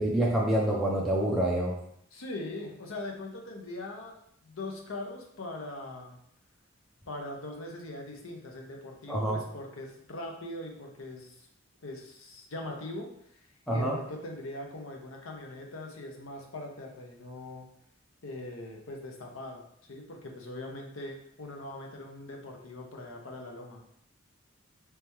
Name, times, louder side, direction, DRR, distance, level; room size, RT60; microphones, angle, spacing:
voice 1, 0.0-1.7 9.1-9.4 13.7-14.0, right 1 dB, ahead, -4 dB, 0.5 m, -27 dB
voice 2, 2.1-6.2 7.1-11.4 11.8-13.1 13.7-17.7 18.2-23.8, left 2 dB, 80° left, 1 dB, 0.8 m, -41 dB
3.4 x 3.3 x 3.0 m, 0.70 s
head